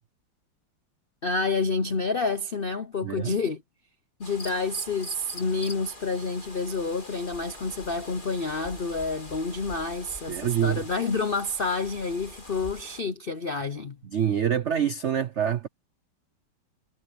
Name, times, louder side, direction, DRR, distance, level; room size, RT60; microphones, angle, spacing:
voice 1, 1.2-3.6 4.2-14.0, left 3 dB, 60° left, 0.5 m, -29 dB
voice 2, 3.0-3.4 10.3-10.8 14.1-15.7, right 9 dB, 80° right, 0.6 m, -26 dB
sound 1, 4.2-13.0, left 1 dB, 25° left, 4.1 m, -44 dB
omnidirectional pair, 2.1 m